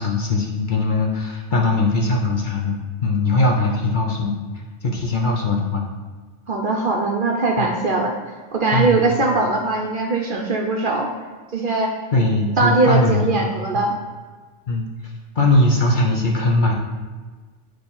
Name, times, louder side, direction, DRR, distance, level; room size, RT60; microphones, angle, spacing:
voice 1, 0.0-4.3 4.8-5.8 7.6-7.7 8.7-9.0 12.1-13.3 14.7-14.9 15.4-16.7, left 2 dB, 45° left, 0 dB, 0.8 m, -20 dB
voice 2, 6.5-8.2 8.5-11.1 11.5-11.9 12.6-14.0, right 3 dB, 50° right, 1 dB, 0.7 m, -20 dB
8.7 x 3.2 x 4.3 m, 1.4 s
omnidirectional pair, 1.3 m